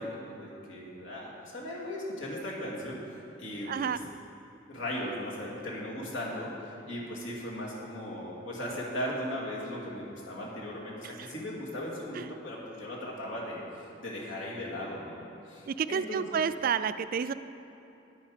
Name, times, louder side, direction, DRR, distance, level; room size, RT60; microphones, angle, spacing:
voice 1, 0.0-3.0 3.4-4.0 4.7-6.5 6.9-16.3, left 1 dB, 85° left, -4 dB, 2.6 m, -37 dB
voice 2, 3.7-4.0 11.0-11.3 12.2-12.3 15.7-17.3, right 7 dB, 45° right, 13 dB, 0.3 m, -30 dB
10.0 x 10.0 x 5.1 m, 2.9 s
head